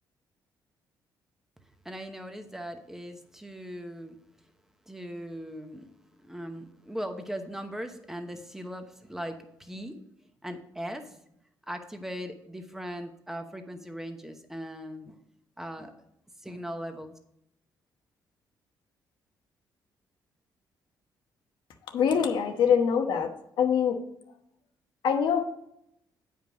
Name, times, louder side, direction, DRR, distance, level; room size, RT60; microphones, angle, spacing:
voice 1, 1.8-4.2 4.9-5.9 6.2-10.0 10.4-11.2 11.7-15.2 15.6-15.9 16.4-17.1, equal, 5° right, 6 dB, 0.9 m, -39 dB
voice 2, 21.9-23.3 23.6-24.0 25.0-25.4, left 7 dB, 80° left, 5 dB, 1.1 m, -24 dB
9.2 x 5.2 x 5.1 m, 0.77 s
cardioid pair, 140°, 8 cm